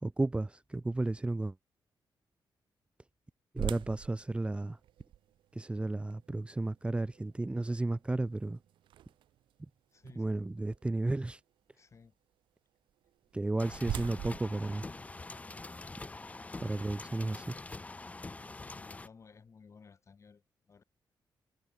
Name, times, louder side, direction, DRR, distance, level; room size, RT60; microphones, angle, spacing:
voice 1, 0.0-1.5 3.5-4.8 5.5-8.6 10.0-11.4 13.3-14.9 16.6-17.5, right 2 dB, 15° right, 1.1 m, -33 dB
sound 1, 3.6-9.5 10.1-10.2 10.8-11.0 13.1-15.7, right 12 dB, 90° right, 0.4 m, -44 dB
voice 2, 9.9-10.3 11.7-12.1 18.5-20.8, left 5 dB, 35° left, 3.7 m, -57 dB
sound 2, 13.6-19.1, left 3 dB, 15° left, 1.0 m, -45 dB
wide cardioid pair, 145°, 8 cm